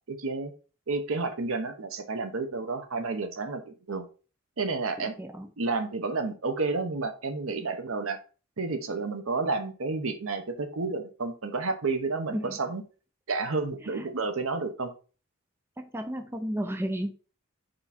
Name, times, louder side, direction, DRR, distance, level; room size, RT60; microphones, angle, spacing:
voice 1, 0.1-0.5 0.9-4.0 4.6-5.2 5.6-8.2 8.6-12.8 13.3-14.9, right 3 dB, 80° right, 8 dB, 1.0 m, -30 dB
voice 2, 5.0-5.5 12.3-12.6 13.8-14.1 15.8-17.1, equal, 10° right, 7 dB, 0.5 m, -33 dB
4.9 x 4.7 x 4.2 m, 0.36 s
head